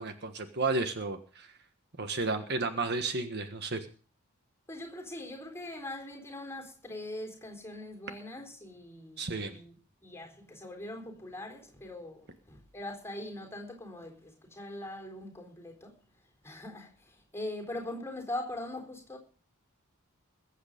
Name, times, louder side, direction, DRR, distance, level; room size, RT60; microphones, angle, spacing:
voice 1, 0.0-1.5 2.0-3.9 9.2-9.5, right 3 dB, 50° right, 1.4 m, -32 dB
voice 2, 4.7-9.8 10.0-15.9 16.4-19.2, left 1 dB, 10° left, 3.8 m, -42 dB
21.5 x 8.2 x 5.2 m
head